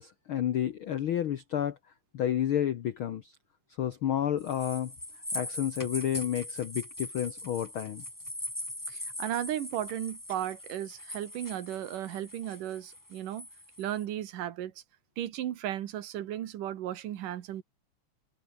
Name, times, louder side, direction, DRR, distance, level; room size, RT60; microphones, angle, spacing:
voice 1, 0.0-1.8 2.1-3.3 3.8-4.9 5.3-8.0, left 10 dB, 75° left, 1.2 m, -30 dB
sound 1, 4.4-14.0, left 1 dB, 5° left, 3.1 m, -41 dB
voice 2, 8.9-13.5 13.8-14.8 15.2-17.6, right 12 dB, 80° right, 3.1 m, -35 dB
omnidirectional pair, 3.7 m